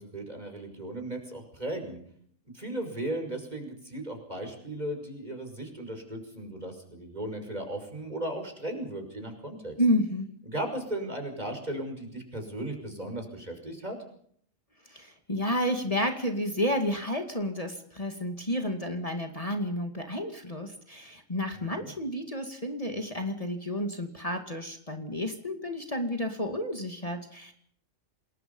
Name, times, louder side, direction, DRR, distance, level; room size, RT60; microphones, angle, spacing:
voice 1, 0.0-2.0 2.5-9.7 10.5-14.0 21.5-21.9, right 1 dB, 35° right, 5 dB, 6.0 m, -36 dB
voice 2, 9.8-10.3 14.9-27.5, equal, 30° left, 5 dB, 2.4 m, -31 dB
27.5 x 21.0 x 5.5 m, 0.63 s
omnidirectional pair, 1.3 m